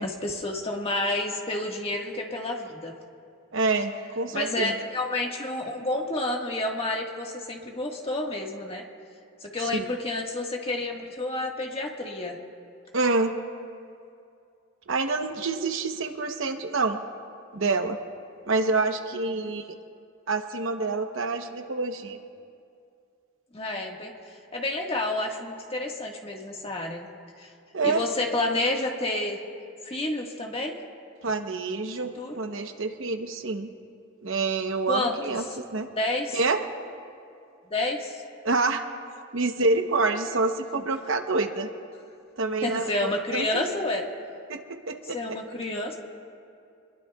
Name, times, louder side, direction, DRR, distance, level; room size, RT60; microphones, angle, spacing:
voice 1, 0.0-3.0 4.3-8.8 9.4-12.4 19.4-19.5 23.5-24.1 24.5-27.1 27.4-27.5 27.8-29.4 29.8-30.8 31.8-32.4 34.9-35.2 35.5-35.6 36.0-36.4 37.7-38.2 42.6-44.1 45.0-46.0, left 2 dB, 30° left, 0 dB, 1.7 m, -30 dB
voice 2, 3.5-4.7 9.7-9.9 12.9-13.3 14.9-17.0 17.5-18.0 18.5-19.7 20.3-22.2 27.7-28.0 31.2-33.7 34.2-35.9 36.3-36.6 38.4-38.8 39.3-41.7 42.4-43.7 44.5-45.4, right 3 dB, 70° right, 6 dB, 1.0 m, -27 dB
25.5 x 21.0 x 2.4 m, 2.5 s
head